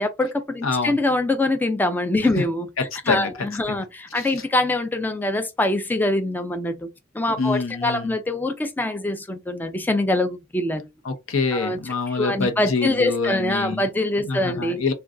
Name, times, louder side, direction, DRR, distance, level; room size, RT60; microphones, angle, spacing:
voice 1, 0.0-2.7 3.1-6.9 7.1-10.9 11.5-11.8 12.1-14.8, left 2 dB, 10° left, 0.3 m, -24 dB
voice 2, 0.6-1.0 2.4-2.5 2.8-3.3 3.7-3.8 4.1-4.3 7.4-8.1 11.0-13.9 14.2-14.9, left 4 dB, 80° left, 0.7 m, -26 dB
2.4 x 2.2 x 3.7 m
head